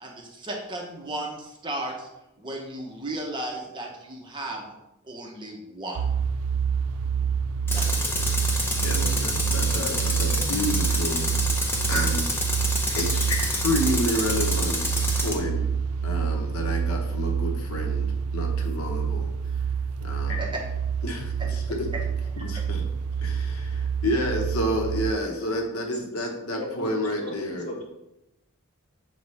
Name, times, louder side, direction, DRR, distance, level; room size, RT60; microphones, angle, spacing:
voice 1, 0.0-2.1 2.4-4.7 5.1-6.0 7.7-8.1 13.4-13.5 20.4-20.5 22.4-22.7, right 1 dB, 20° right, -1 dB, 0.8 m, -35 dB
sound 1, 6.0-25.1, right 7 dB, 85° right, 0.3 m, -27 dB
Tools, 7.7-15.4, left 1 dB, 10° left, 0.7 m, -28 dB
voice 2, 8.8-11.3 11.9-12.4 12.9-15.7 16.0-18.1 18.3-19.3 20.0-20.4 21.0-21.9 22.4-22.8 23.2-27.7, equal, 80° left, 2 dB, 1.0 m, -30 dB
voice 3, 26.6-27.3 27.7-27.8, left 2 dB, 35° left, -3 dB, 1.6 m, -37 dB
6.9 x 4.1 x 3.3 m, 0.90 s
head